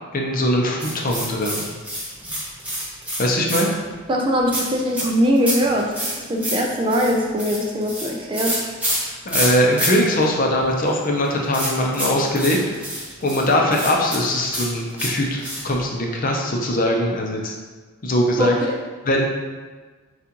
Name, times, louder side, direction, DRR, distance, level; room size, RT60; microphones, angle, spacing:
voice 1, 0.1-1.7 3.2-3.7 9.3-12.6 13.2-17.5 18.0-18.5 19.1-19.3, left 1 dB, 40° left, 0 dB, 0.6 m, -21 dB
sound 1, 0.8-3.9 4.5-9.9 10.1-10.2 10.6-15.8, equal, 5° right, 0.9 m, -27 dB
voice 2, 4.1-5.9 6.3-8.6 18.4-18.5, equal, 25° right, 0 dB, 0.4 m, -21 dB
7.2 x 2.4 x 2.9 m, 1.4 s
head